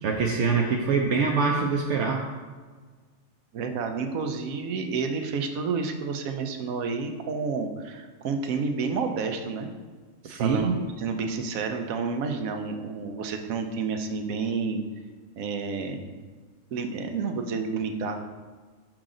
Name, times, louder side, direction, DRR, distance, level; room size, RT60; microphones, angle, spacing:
voice 1, 0.0-2.2 10.2-10.8, right 5 dB, 65° right, 0 dB, 0.8 m, -24 dB
voice 2, 3.5-9.7 10.3-14.8 15.4-16.1 16.7-18.2, right 5 dB, 90° right, 6 dB, 1.1 m, -30 dB
6.1 x 4.9 x 3.7 m, 1.4 s
omnidirectional pair, 1.4 m